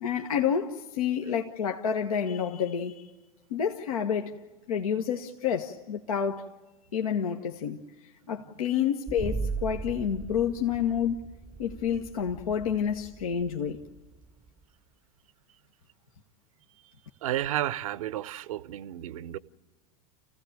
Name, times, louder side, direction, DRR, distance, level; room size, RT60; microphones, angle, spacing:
voice 1, 0.0-3.1 3.5-4.4 4.7-6.5 6.9-7.9 8.3-11.2 11.6-13.8, left 8 dB, 75° left, 1.4 m, -29 dB
voice 2, 8.2-8.6 17.2-19.4, right 13 dB, 70° right, 0.8 m, -32 dB
sound 1, 9.1-14.6, right 4 dB, 10° right, 0.8 m, -38 dB
29.5 x 16.0 x 8.9 m
hypercardioid pair, 95°, 18 cm